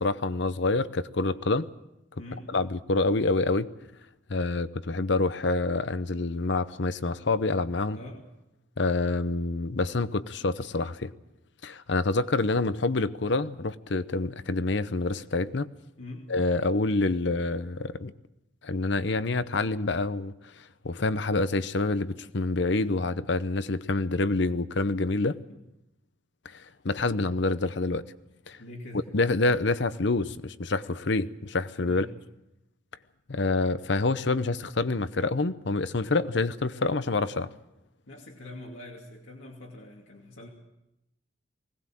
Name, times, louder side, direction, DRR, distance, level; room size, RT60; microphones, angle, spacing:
voice 1, 0.0-1.7 2.5-3.7 4.3-8.0 8.8-11.1 11.6-15.7 16.3-18.1 18.6-20.3 20.8-25.4 26.4-28.0 28.5-28.6 29.1-32.1 33.3-37.5, left 3 dB, 65° left, 0.8 m, -27 dB
voice 2, 2.2-2.5 7.9-8.2 16.0-16.3 25.3-25.6 28.6-29.1 31.9-32.1 38.1-40.5, left 1 dB, 80° left, 2.7 m, -44 dB
20.5 x 18.0 x 7.6 m
head